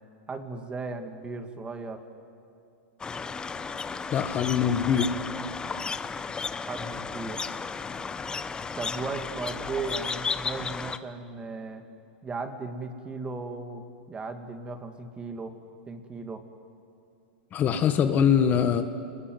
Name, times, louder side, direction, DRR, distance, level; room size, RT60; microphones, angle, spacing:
voice 1, 0.3-2.0 6.7-7.4 8.8-11.8 12.2-15.6 15.9-16.5, right 3 dB, 20° right, 6 dB, 2.3 m, -36 dB
sound 1, 3.0-11.0, left 5 dB, 15° left, 1.0 m, -34 dB
voice 2, 4.1-5.2 17.5-18.8, left 8 dB, 30° left, 8 dB, 1.5 m, -23 dB
27.5 x 21.5 x 9.4 m, 2.6 s
hypercardioid pair, 120°, 6 cm